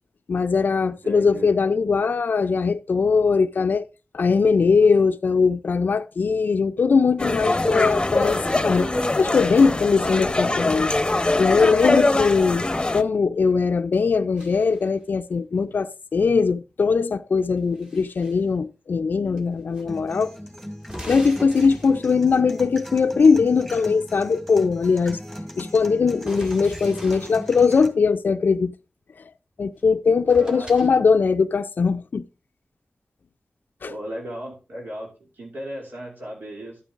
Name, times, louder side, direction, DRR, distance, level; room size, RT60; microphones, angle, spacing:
voice 1, 0.3-3.9 4.1-10.9 11.4-12.7 12.9-20.4 21.1-25.2 25.6-28.7 29.6-32.2 33.8-33.9, left 5 dB, 70° left, 0.4 m, -20 dB
voice 2, 0.9-1.5 10.0-10.1 30.4-31.0 33.9-36.8, equal, 80° right, 2.5 m, -36 dB
sound 1, 7.2-13.0, left 2 dB, 25° left, 0.8 m, -23 dB
sound 2, 14.4-15.0 17.4-18.4 19.4-19.8 20.1-20.2 20.8-22.2 26.2-27.7 29.8-29.9 30.3-30.9, equal, 20° right, 1.8 m, -41 dB
sound 3, 19.9-27.9, equal, 5° right, 2.2 m, -38 dB
12.5 x 8.9 x 2.5 m
wide cardioid pair, 75°, 3 cm